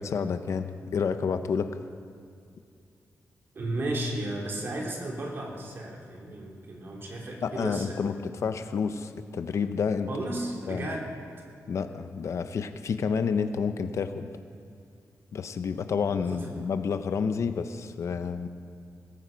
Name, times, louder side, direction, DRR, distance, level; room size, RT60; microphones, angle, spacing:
voice 1, 0.0-1.8 7.4-10.1 10.7-10.9 11.7-14.3 15.3-18.5, left 6 dB, 60° left, 9 dB, 0.7 m, -29 dB
voice 2, 3.5-8.0 10.1-11.1 16.3-16.5, right 1 dB, 40° right, -1 dB, 3.0 m, -34 dB
19.0 x 14.5 x 5.2 m, 2.4 s
wide cardioid pair, 170°, 6 cm